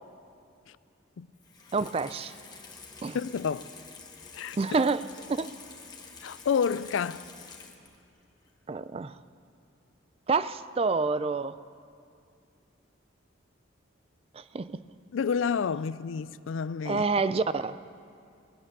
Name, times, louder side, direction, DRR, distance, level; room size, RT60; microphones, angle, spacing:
Water tap faucet / Sink (filling or washing), 1.4-8.1 8.4-8.5, left 4 dB, 20° left, 1.2 m, -48 dB
voice 1, 1.7-2.3 3.0-3.2 4.6-5.0 5.4-5.5 8.7-9.1 10.3-11.6 14.3-14.8 16.9-17.9, right 4 dB, 30° right, 0.3 m, -28 dB
voice 2, 3.1-3.7 4.3-4.6 6.2-7.3 15.1-17.0, left 6 dB, 80° left, 0.4 m, -29 dB
19.0 x 11.0 x 6.7 m
head